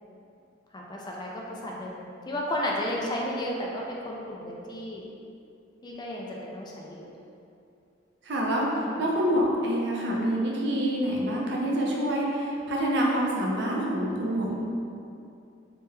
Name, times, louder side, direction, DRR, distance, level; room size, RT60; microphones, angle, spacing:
voice 1, 0.7-5.1 5.8-7.1 8.8-9.0, left 1 dB, 25° left, -3 dB, 0.3 m, -33 dB
voice 2, 8.2-14.6, equal, 65° right, -3 dB, 0.5 m, -26 dB
3.4 x 2.1 x 3.2 m, 2.6 s
head